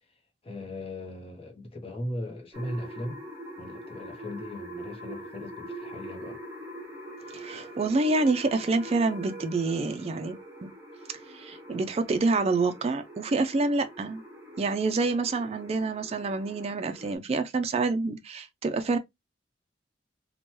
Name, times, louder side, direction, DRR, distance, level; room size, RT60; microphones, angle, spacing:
voice 1, 0.4-3.2 3.6-6.4, left 1 dB, 35° left, 0.7 m, -38 dB
sound 1, 2.5-17.2, right 1 dB, 15° right, 1.0 m, -43 dB
voice 2, 7.3-10.7 11.3-14.2 14.6-19.0, right 3 dB, 35° right, 0.3 m, -27 dB
2.9 x 2.1 x 3.0 m
head